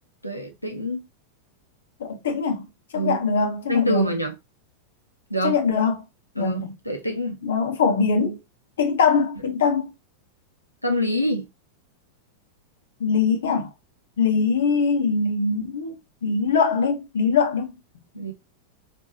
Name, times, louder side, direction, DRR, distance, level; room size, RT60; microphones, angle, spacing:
voice 1, 0.2-1.1 2.9-3.2 3.7-4.4 5.3-5.6 6.3-6.6 6.8-7.4 10.8-11.5 18.1-18.3, equal, 90° left, 1.2 m, -25 dB
voice 2, 2.0-2.7 2.9-4.1 5.4-6.0 6.4-6.7 7.4-8.4 8.8-9.9 13.0-13.7 14.2-17.7, left 5 dB, 60° left, 1.0 m, -22 dB
4.3 x 3.4 x 2.8 m
figure-of-eight pair, 90°, 0 cm